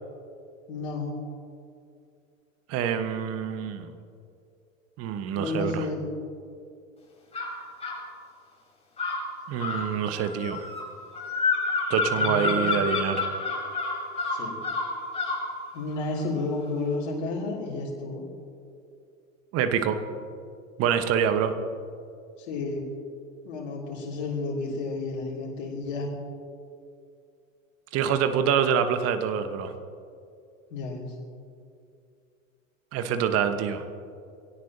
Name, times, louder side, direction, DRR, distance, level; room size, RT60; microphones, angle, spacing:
voice 1, 0.7-1.1 5.3-6.1 12.2-13.0 14.3-14.6 15.7-18.2 22.4-22.9 23.4-26.1 30.7-31.1, left 3 dB, 55° left, -5 dB, 3.2 m, -31 dB
voice 2, 2.7-3.9 5.0-5.9 9.5-10.7 11.9-13.3 19.5-20.0 20.8-21.5 27.9-29.7 32.9-33.8, right 8 dB, 35° right, 9 dB, 1.4 m, -26 dB
sound 1, 7.3-8.0 9.0-15.5, left 3 dB, 15° left, 4.4 m, -29 dB
24.5 x 17.0 x 3.0 m, 2.4 s
figure-of-eight pair, 80°, 39 cm